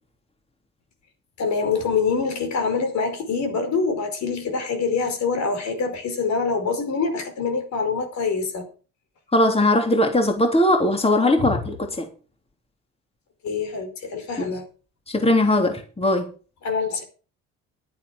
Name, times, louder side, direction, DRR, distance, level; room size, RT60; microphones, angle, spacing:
voice 1, 1.4-8.7 11.4-11.7 13.4-14.7 16.6-17.0, left 4 dB, 60° left, 5.1 m, -25 dB
voice 2, 9.3-12.1 14.4-14.5 15.1-16.3, left 1 dB, 20° left, 3.3 m, -20 dB
11.5 x 9.3 x 6.1 m
supercardioid pair, 65°, 31 cm